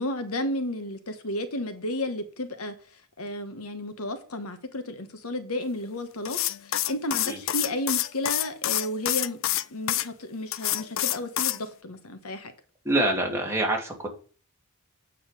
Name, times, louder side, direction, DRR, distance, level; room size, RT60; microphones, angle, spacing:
voice 1, 0.0-2.7 3.2-9.4 9.7-12.5, left 1 dB, 80° left, 1.3 m, -32 dB
sound 1, 6.2-10.1 10.5-11.6, left 13 dB, 60° left, 0.5 m, -27 dB
voice 2, 12.8-14.1, right 1 dB, 10° right, 2.5 m, -25 dB
8.6 x 5.7 x 6.6 m
head